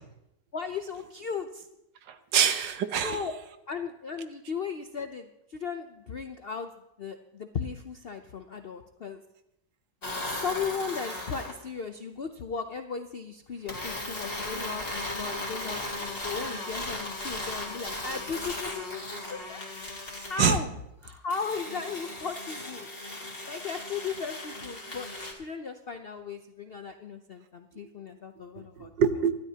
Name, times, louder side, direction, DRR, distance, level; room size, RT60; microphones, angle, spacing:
voice 1, 0.5-1.7 3.0-3.3 3.7-6.7 7.0-9.2 10.2-19.6 20.2-20.7 21.0-22.9 23.5-25.1 25.3-28.9, left 5 dB, 65° left, 7 dB, 0.5 m, -36 dB
voice 2, 2.1-3.2 20.2-20.6 28.6-29.3, right 7 dB, 85° right, 9 dB, 1.6 m, -26 dB
sound 1, 10.0-11.6 13.7-20.4 21.3-25.3, left 2 dB, 30° left, 2.4 m, -37 dB
25.5 x 12.5 x 2.8 m, 0.85 s
omnidirectional pair, 1.9 m